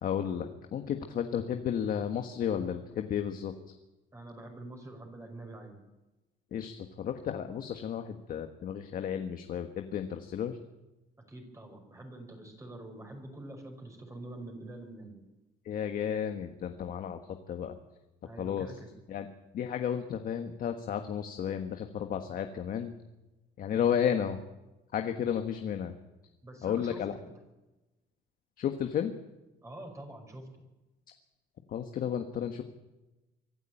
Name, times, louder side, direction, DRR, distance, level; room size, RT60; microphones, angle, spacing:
voice 1, 0.0-3.5 6.5-10.6 15.6-17.8 18.4-18.7 19.1-19.3 19.5-22.9 23.6-24.4 24.9-25.9 26.6-27.1 28.6-29.1 31.7-32.6, left 8 dB, 55° left, 6 dB, 1.5 m, -33 dB
voice 2, 4.1-5.8 11.3-15.2 18.2-18.9 26.4-27.3 29.6-30.6, right 2 dB, 20° right, 3 dB, 5.6 m, -46 dB
24.5 x 11.5 x 9.1 m, 1.1 s
cardioid pair, 110°, 17 cm